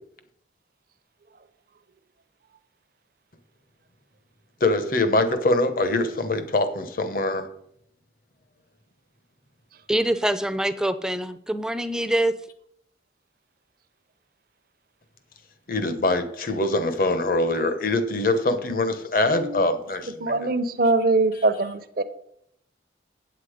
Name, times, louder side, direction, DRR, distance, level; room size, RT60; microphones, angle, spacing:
voice 1, 4.6-7.5 15.7-20.4, left 2 dB, 50° left, 1.0 m, -23 dB
voice 2, 9.9-12.3, right 1 dB, 5° right, 0.4 m, -24 dB
voice 3, 19.3-19.7 20.2-22.0, right 2 dB, 55° right, 0.7 m, -23 dB
8.3 x 8.2 x 5.0 m
head